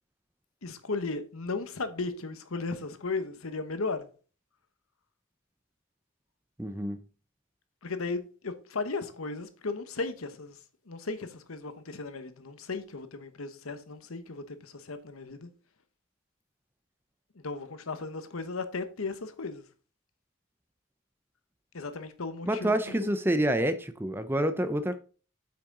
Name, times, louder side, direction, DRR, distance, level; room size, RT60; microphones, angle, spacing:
voice 1, 0.6-4.1 7.8-10.6 10.9-15.5 17.4-19.6 21.7-23.0, left 3 dB, 85° left, 1.0 m, -36 dB
voice 2, 6.6-7.0 22.5-25.0, right 1 dB, 10° right, 0.5 m, -28 dB
8.5 x 5.8 x 3.7 m
head